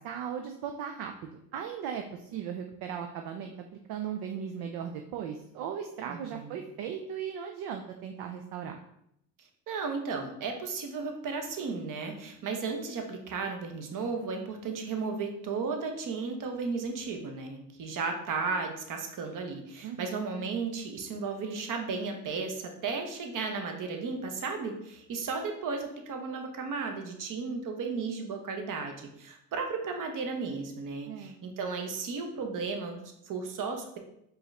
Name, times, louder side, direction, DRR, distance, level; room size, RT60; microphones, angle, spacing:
voice 1, 0.0-3.5 3.9-8.8 19.8-20.2 31.1-31.4, right 8 dB, 65° right, 4 dB, 0.5 m, -37 dB
voice 2, 6.1-6.6 9.4-34.0, right 4 dB, 50° right, 4 dB, 0.9 m, -34 dB
4.6 x 2.6 x 3.2 m, 0.76 s
supercardioid pair, 65°, 42 cm